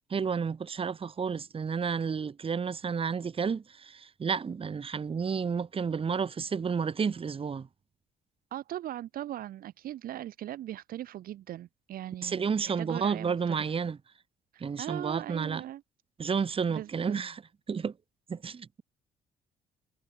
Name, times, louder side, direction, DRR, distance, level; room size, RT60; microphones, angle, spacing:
voice 1, 0.1-7.7 12.2-14.0 14.6-15.6 16.2-17.4 17.7-17.9 18.3-18.8, right 6 dB, 35° right, 1.1 m, -31 dB
voice 2, 8.5-13.6 14.5-15.8 16.7-17.2, right 13 dB, 60° right, 0.9 m, -39 dB
hypercardioid pair, 55°, 17 cm